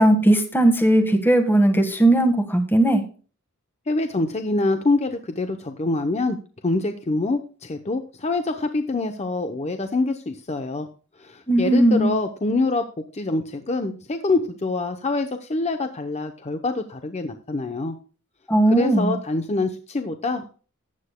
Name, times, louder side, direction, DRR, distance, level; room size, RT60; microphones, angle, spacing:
voice 1, 0.0-3.0 11.5-12.1 18.5-19.1, right 1 dB, 10° left, 6 dB, 1.5 m, -18 dB
voice 2, 3.9-6.4 6.6-10.9 11.2-12.8 13.1-18.0 18.7-20.5, left 2 dB, 30° left, 7 dB, 0.7 m, -25 dB
14.5 x 9.7 x 2.2 m, 0.37 s
head